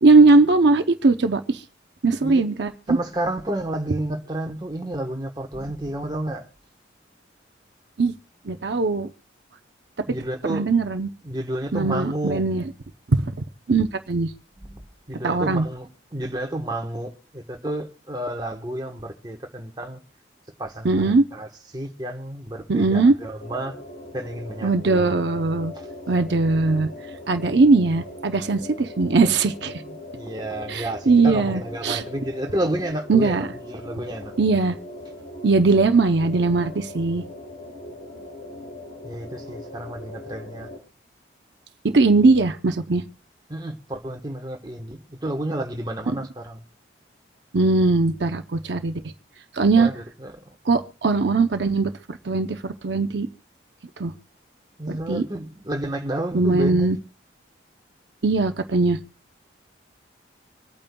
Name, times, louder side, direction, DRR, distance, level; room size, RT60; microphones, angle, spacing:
voice 1, 0.0-1.6 2.0-3.0 8.0-8.1 8.5-9.1 10.5-11.1 11.7-12.6 13.2-13.3 13.7-14.3 15.2-15.7 20.8-21.2 22.7-23.1 24.6-25.7 26.1-26.9 27.3-29.8 30.7-32.0 33.1-33.5 34.4-34.8 35.4-37.2 41.8-43.0 47.5-48.9 49.5-49.9 50.7-53.3 54.0-54.1 54.9-55.3 56.3-57.0 58.2-59.0, right 3 dB, 65° right, 0.7 m, -20 dB
voice 2, 2.9-6.5 10.1-10.7 11.2-12.4 14.6-14.8 15.1-20.0 20.6-23.7 24.1-25.2 25.7-25.9 29.9-34.3 39.0-40.7 43.5-46.6 49.8-50.3 54.8-56.9, right 1 dB, 20° right, 1.2 m, -31 dB
sound 1, 23.4-40.8, left 1 dB, 85° left, 3.9 m, -40 dB
26.0 x 8.8 x 2.3 m
head